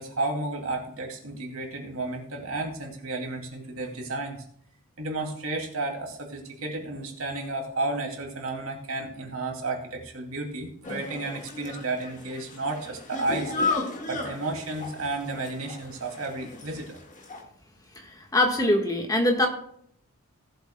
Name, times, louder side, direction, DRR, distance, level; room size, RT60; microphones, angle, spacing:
voice 1, 0.0-4.4 5.0-17.0, right 2 dB, 70° right, 1 dB, 2.5 m, -32 dB
sound 1, 10.8-17.4, left 3 dB, 35° left, 1.7 m, -34 dB
voice 2, 18.3-19.5, left 1 dB, 15° left, 3 dB, 1.4 m, -22 dB
18.5 x 8.0 x 2.2 m, 0.66 s
head